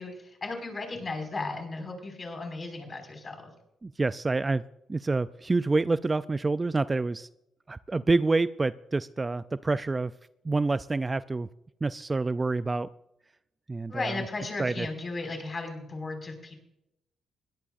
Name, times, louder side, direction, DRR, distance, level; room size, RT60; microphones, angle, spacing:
voice 1, 0.0-3.5 13.9-16.5, left 3 dB, 30° left, 4 dB, 5.6 m, -35 dB
voice 2, 3.8-4.6 4.9-7.3 7.7-10.1 10.4-11.5 11.8-12.9 13.7-14.2 14.6-14.9, right 3 dB, 25° right, 14 dB, 0.4 m, -27 dB
22.0 x 17.5 x 2.6 m, 0.85 s
cardioid pair, 90°, 0 cm